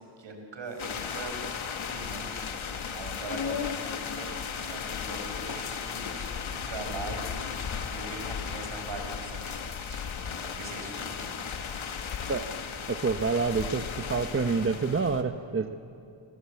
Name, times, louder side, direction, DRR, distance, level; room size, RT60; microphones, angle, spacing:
voice 1, 0.2-1.4 1.7-2.3 2.9-6.1 6.5-7.4 7.8-11.4, right 3 dB, 70° right, 4 dB, 5.6 m, -41 dB
sound 1, 0.6-14.2, left 7 dB, 55° left, 2.0 m, -45 dB
sound 2, 0.8-15.2, left 6 dB, 85° left, 1.9 m, -36 dB
voice 2, 12.9-15.7, right 4 dB, 30° right, 7 dB, 0.8 m, -27 dB
30.0 x 23.5 x 8.4 m, 2.5 s
wide cardioid pair, 140°, 47 cm